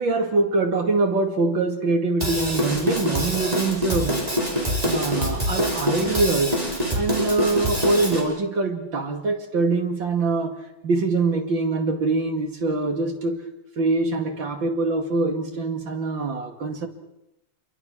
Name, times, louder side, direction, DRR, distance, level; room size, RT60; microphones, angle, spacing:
voice 1, 0.0-4.2 4.8-6.6 6.9-13.4 13.8-16.9, right 3 dB, 85° right, 4 dB, 3.1 m, -24 dB
Drum kit / Drum, 2.2-8.2, equal, 20° right, 5.2 m, -25 dB
27.5 x 23.0 x 6.2 m, 0.91 s
omnidirectional pair, 2.0 m